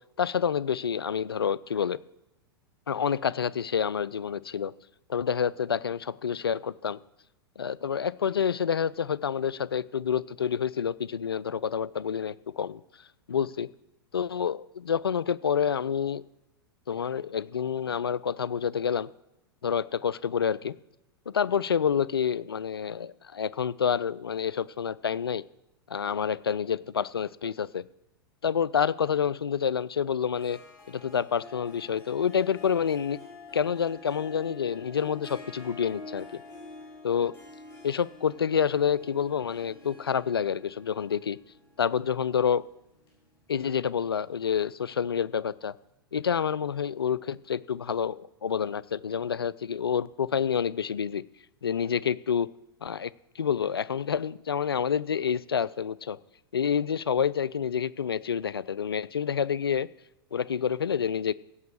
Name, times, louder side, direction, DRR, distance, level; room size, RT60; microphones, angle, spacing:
voice 1, 0.2-2.0 2.9-4.7 5.1-7.0 7.6-12.8 13.3-13.7 14.1-16.2 16.9-19.1 19.6-20.7 21.3-25.4 25.9-27.8 28.4-30.6 30.9-33.2 33.5-36.4 37.0-37.3 37.8-41.4 41.8-42.6 43.5-45.7 46.1-51.2 51.6-52.5 52.8-56.2 56.5-59.9 60.3-61.3, left 7 dB, 75° left, 20 dB, 0.4 m, -28 dB
Harp, 30.4-43.9, left 3 dB, 25° left, 5.1 m, -48 dB
16.0 x 5.5 x 6.4 m, 0.95 s
figure-of-eight pair, 95°, 13 cm